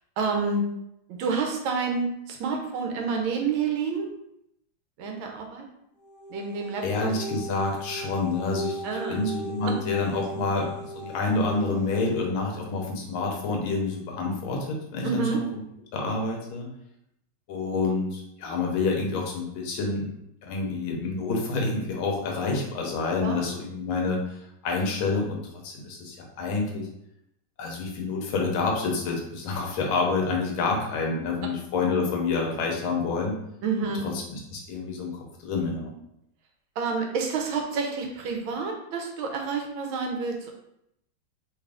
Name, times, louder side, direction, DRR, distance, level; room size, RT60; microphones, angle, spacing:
voice 1, 0.2-0.6 1.2-4.1 5.0-5.6 6.3-7.1 8.8-9.2 9.7-9.8 15.0-15.4 23.2-23.4 33.6-34.0 36.8-40.5, right 4 dB, 85° right, 2 dB, 1.5 m, -28 dB
sound 1, 6.0-12.1, right 1 dB, 40° left, 0.7 m, -37 dB
voice 2, 6.8-15.6 15.9-16.7 17.5-20.0 20.4-24.4 24.6-25.4 25.6-26.9 27.6-33.4 34.1-35.9, left 3 dB, 85° left, 0 dB, 1.6 m, -28 dB
3.8 x 2.4 x 3.4 m, 0.78 s
omnidirectional pair, 2.2 m